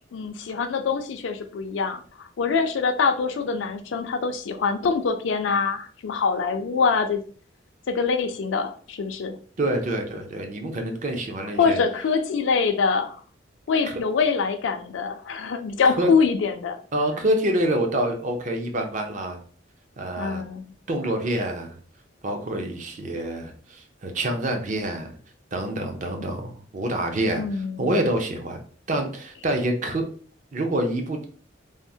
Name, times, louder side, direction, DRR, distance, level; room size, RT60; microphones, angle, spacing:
voice 1, 0.1-7.2 7.9-9.4 11.6-13.2 13.7-16.8 20.2-20.7 27.4-27.9, left 5 dB, 70° left, 6 dB, 0.4 m, -24 dB
voice 2, 9.6-11.8 16.0-16.1 16.9-19.4 20.0-20.4 20.9-21.8 22.2-25.1 25.5-27.4 27.8-28.6 28.9-30.0 30.5-31.2, right 1 dB, 40° right, 4 dB, 0.5 m, -26 dB
3.5 x 2.0 x 2.6 m, 0.43 s
head